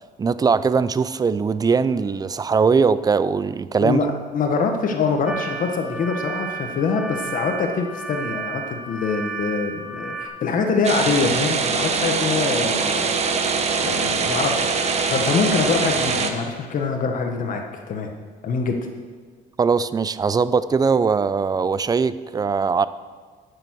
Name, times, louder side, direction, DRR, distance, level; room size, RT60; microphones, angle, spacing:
voice 1, 0.2-4.0 19.6-22.9, right 5 dB, 20° right, 15 dB, 0.4 m, -20 dB
voice 2, 3.8-13.1 13.8-14.7 15.0-18.1 18.4-18.7, left 4 dB, 55° left, 3 dB, 1.3 m, -24 dB
sound 1, 5.3-10.3, right 4 dB, 5° right, 1.8 m, -32 dB
sound 2, 10.8-16.3, right 4 dB, 40° right, 1.1 m, -23 dB
12.0 x 6.9 x 6.3 m, 1.5 s
cardioid pair, 110°, 17 cm